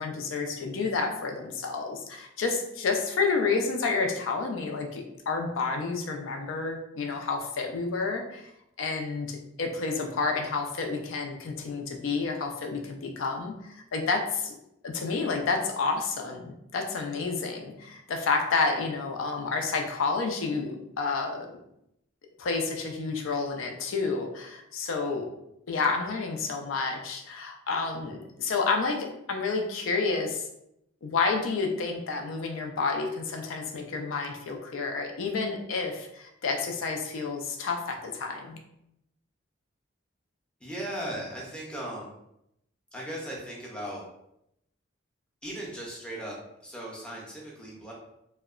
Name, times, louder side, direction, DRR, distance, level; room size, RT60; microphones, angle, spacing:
voice 1, 0.0-8.5 8.8-14.5 14.8-21.5 22.4-25.2 25.7-30.5 31.0-38.6, left 4 dB, 80° left, 3 dB, 0.4 m, -30 dB
voice 2, 40.6-42.1 42.9-44.0 45.4-47.9, right 1 dB, 5° left, -4 dB, 0.5 m, -37 dB
2.7 x 2.1 x 2.4 m, 0.81 s
head